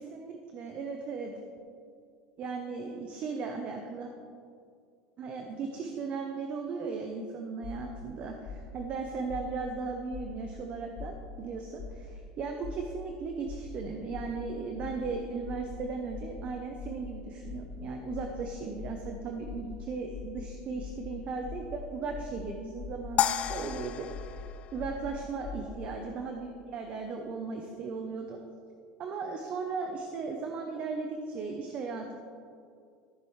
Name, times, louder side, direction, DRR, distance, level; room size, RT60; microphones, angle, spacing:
voice 1, 0.0-1.3 2.4-4.1 5.2-24.1 24.7-28.4 29.0-32.1, right 4 dB, 40° right, 3 dB, 0.8 m, -37 dB
sound 1, 7.6-8.0 8.5-8.8 9.3-9.6 10.1-10.5 11.0-11.3 11.8-12.1 12.6-13.0 13.5-13.8 14.1-14.4 14.8-15.1 15.4-15.8 16.1-16.4 16.8-17.1 17.4-17.8 18.1-18.4 18.8-19.1 19.4-19.8 20.1-20.4 20.8-21.1 21.4-21.8 22.1-22.4 22.8-23.1 23.4-23.8 24.1-24.4 24.8-25.1 25.4-25.7, left 5 dB, 60° left, 1.4 m, -41 dB
sound 2, 23.2-25.6, left 10 dB, 40° left, 0.4 m, -32 dB
13.5 x 7.5 x 3.3 m, 2.3 s
supercardioid pair, 130°, 3 cm